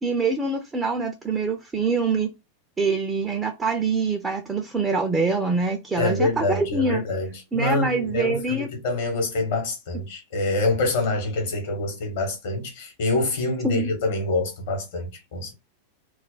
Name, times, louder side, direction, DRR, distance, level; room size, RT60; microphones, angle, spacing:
voice 1, 0.0-2.3 2.8-7.0 7.5-8.7 13.6-13.9, right 3 dB, 15° right, 0.5 m, -24 dB
voice 2, 6.0-15.5, left 2 dB, 55° left, 1.0 m, -26 dB
2.4 x 2.1 x 3.9 m
figure-of-eight pair, 90°, 0 cm